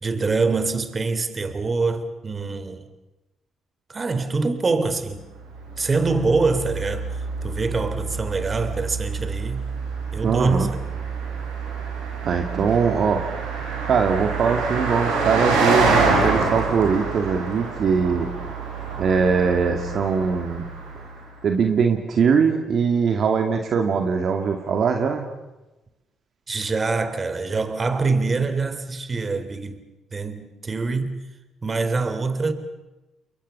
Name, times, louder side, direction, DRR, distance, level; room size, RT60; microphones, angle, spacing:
voice 1, 0.0-2.9 3.9-5.2 5.8-9.7 10.1-10.8 26.5-29.8 30.1-31.2 31.6-32.5, right 3 dB, 35° right, 3.3 m, -24 dB
Car passing by, 5.5-21.3, right 4 dB, 90° right, 5.7 m, -27 dB
voice 2, 10.2-10.7 12.2-13.2 13.9-18.3 19.0-20.7 21.4-25.3, right 6 dB, 60° right, 2.4 m, -21 dB
29.5 x 22.5 x 7.0 m
hypercardioid pair, 55°, 0 cm